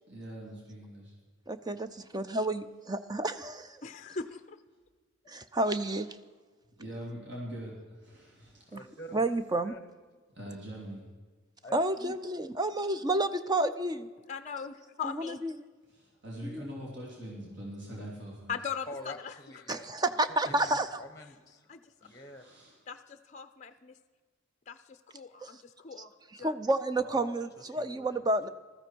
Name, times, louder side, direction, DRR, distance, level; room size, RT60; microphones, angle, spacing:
voice 1, 0.1-1.1 6.8-8.8 10.3-11.0 15.9-18.6 20.4-20.8 22.0-22.8, equal, 55° right, -3 dB, 3.1 m, -43 dB
voice 2, 1.5-3.8 5.3-6.2 8.7-8.8 9.1-9.7 11.7-14.1 15.0-15.5 16.4-16.7 19.7-21.0 25.4-25.6 26.4-28.5, right 2 dB, 20° right, 11 dB, 0.5 m, -30 dB
voice 3, 3.8-4.6 14.3-15.4 18.5-19.3 19.7-19.8 21.7-21.9 22.9-24.0 24.7-26.5, left 6 dB, 35° left, 9 dB, 0.5 m, -40 dB
voice 4, 8.7-9.3 9.6-9.8 11.6-11.8 18.9-20.2 20.7-22.4 27.0-28.2, left 1 dB, 15° left, 8 dB, 1.0 m, -47 dB
15.0 x 13.5 x 4.5 m, 1.4 s
head